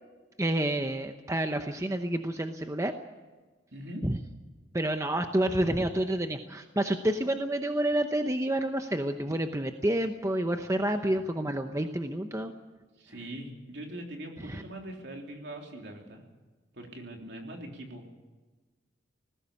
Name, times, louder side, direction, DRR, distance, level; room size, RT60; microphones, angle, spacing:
voice 1, 0.4-2.9 4.0-4.2 4.7-12.5 14.4-14.6, right 1 dB, 15° right, 6 dB, 0.8 m, -29 dB
voice 2, 3.7-4.1 13.0-16.3 16.7-18.2, right 1 dB, 60° right, 2 dB, 3.4 m, -42 dB
19.5 x 16.0 x 8.5 m, 1.3 s
head